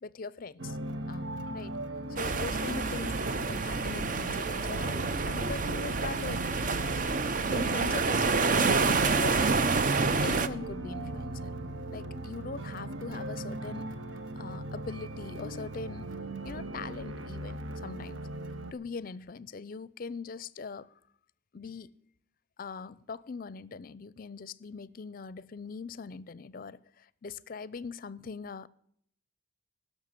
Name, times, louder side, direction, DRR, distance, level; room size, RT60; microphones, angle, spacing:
voice 1, 0.0-0.8 1.1-1.7 2.1-6.4 7.5-9.4 10.2-11.5 11.9-13.9 14.4-16.1 16.4-18.2 18.7-20.9 21.5-21.9 22.6-28.7, left 4 dB, 45° left, 0.5 m, -41 dB
sound 1, 0.6-18.7, right 1 dB, 80° right, 0.9 m, -38 dB
sound 2, 2.2-10.5, right 4 dB, 45° right, 0.6 m, -28 dB
12.5 x 6.3 x 9.8 m
head